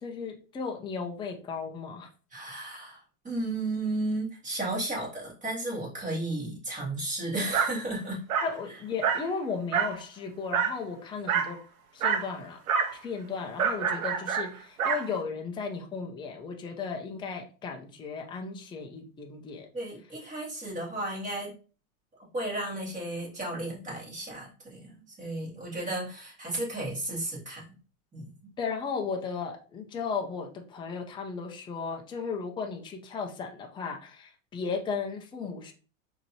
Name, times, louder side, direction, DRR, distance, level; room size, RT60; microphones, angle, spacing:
voice 1, 0.0-2.1 8.4-11.6 11.9-12.6 13.0-19.7 28.6-35.7, left 5 dB, 10° left, 2 dB, 0.5 m, -35 dB
voice 2, 2.3-8.2 8.7-8.8 19.7-21.5 22.3-27.7 28.1-28.5, right 2 dB, 20° right, -5 dB, 2.3 m, -34 dB
Dog, 7.5-7.8 8.3-8.6 9.0-9.3 9.7-10.0 10.5-10.8 11.3-11.6 12.0-12.3 12.7-13.0 13.6-15.1, right 7 dB, 90° right, 0.9 m, -27 dB
5.0 x 2.9 x 2.8 m, 0.36 s
supercardioid pair, 120°, 41 cm